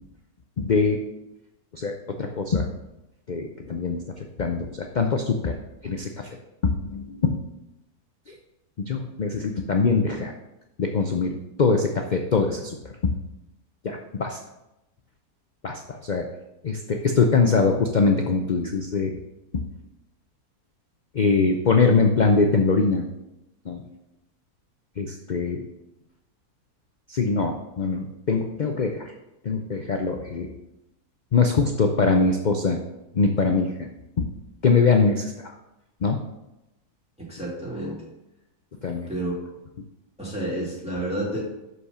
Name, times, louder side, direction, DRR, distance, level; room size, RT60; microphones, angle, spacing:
voice 1, 0.6-1.0 1.7-2.7 3.3-4.0 4.4-5.6 5.8-6.3 6.6-7.4 8.3-8.4 8.8-10.3 10.8-12.8 13.0-13.2 13.8-14.4 15.6-16.2 16.6-19.2 19.5-19.6 21.1-23.1 23.7-23.8 25.0-25.6 27.1-29.0 29.4-30.5 31.3-32.8 33.1-33.9 34.2-34.3 34.6-35.5 36.0-36.2 38.8-39.1, left 4 dB, 75° left, 3 dB, 0.4 m, -23 dB
voice 2, 37.3-38.0 39.1-39.5 40.2-41.4, right 1 dB, 5° right, -6 dB, 2.5 m, -30 dB
6.2 x 5.5 x 5.6 m, 0.92 s
omnidirectional pair, 1.6 m